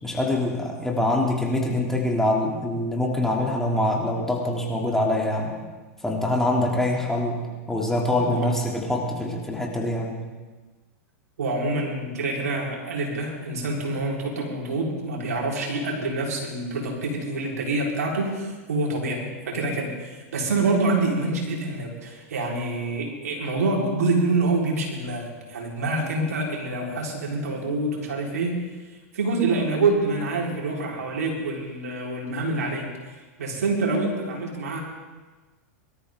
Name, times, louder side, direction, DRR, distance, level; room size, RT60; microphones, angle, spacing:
voice 1, 0.0-5.6 6.0-10.2, left 1 dB, 5° left, -1 dB, 3.0 m, -24 dB
voice 2, 11.4-28.6 29.1-34.8, right 2 dB, 85° right, -2 dB, 4.4 m, -26 dB
23.5 x 13.0 x 3.8 m, 1.3 s
hypercardioid pair, 110°, 8 cm